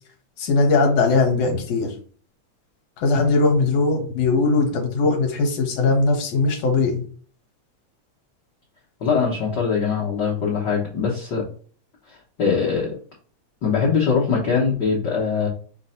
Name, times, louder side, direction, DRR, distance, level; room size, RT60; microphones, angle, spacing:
voice 1, 0.4-1.9 3.0-7.0, left 3 dB, 70° left, 3 dB, 2.0 m, -20 dB
voice 2, 9.0-11.4 12.1-13.0 13.6-15.5, left 5 dB, 85° left, -4 dB, 0.9 m, -22 dB
6.2 x 2.1 x 4.2 m, 0.43 s
omnidirectional pair, 3.4 m